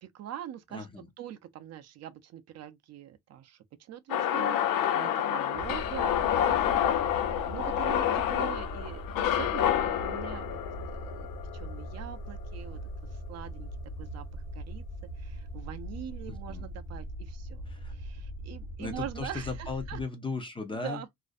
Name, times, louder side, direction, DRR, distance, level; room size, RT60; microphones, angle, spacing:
voice 1, 0.0-0.9 1.2-13.7 14.0-14.8 15.2-17.6 17.9-20.0 20.8-21.1, right 10 dB, 50° right, 0.4 m, -43 dB
voice 2, 0.7-1.1 16.3-16.7 17.7-17.9 18.8-21.1, left 3 dB, 15° left, 0.4 m, -37 dB
sound 1, 4.1-12.3, left 10 dB, 75° left, 0.5 m, -28 dB
sound 2, 5.5-20.0, right 1 dB, 60° left, 0.9 m, -41 dB
2.5 x 2.1 x 2.3 m
cardioid pair, 140°, 34 cm